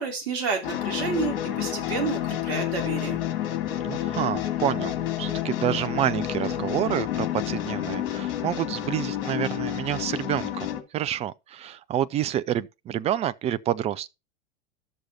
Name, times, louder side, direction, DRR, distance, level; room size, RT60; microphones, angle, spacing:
voice 1, 0.0-3.2, right 5 dB, 50° right, 3.3 m, -30 dB
sound 1, 0.6-10.8, left 12 dB, 55° left, 2.3 m, -29 dB
voice 2, 3.8-14.1, right 11 dB, 20° right, 0.4 m, -28 dB
12.0 x 6.3 x 4.3 m
figure-of-eight pair, 85°, 33 cm